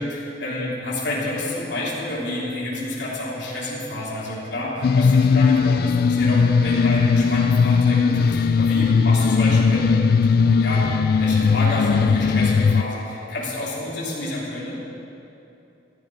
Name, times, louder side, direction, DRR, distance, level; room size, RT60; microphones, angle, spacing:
voice 1, 0.0-10.9 11.1-14.7, left 1 dB, 75° left, -6 dB, 3.4 m, -29 dB
sound 1, 4.8-12.8, left 5 dB, 55° left, 0.3 m, -18 dB
14.0 x 12.0 x 5.3 m, 2.8 s
head